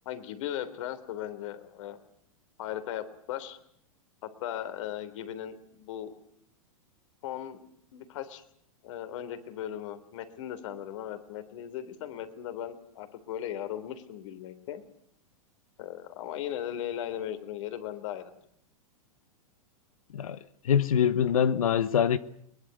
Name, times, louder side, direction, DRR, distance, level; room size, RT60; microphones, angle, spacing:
voice 1, 0.1-2.0 2.6-3.6 4.2-6.1 7.2-7.6 7.9-8.4 8.8-14.8 15.8-18.3, left 11 dB, 60° left, 3.5 m, -37 dB
voice 2, 20.6-22.2, left 8 dB, 80° left, 1.2 m, -24 dB
22.5 x 20.5 x 9.5 m
hypercardioid pair, 110°, 18 cm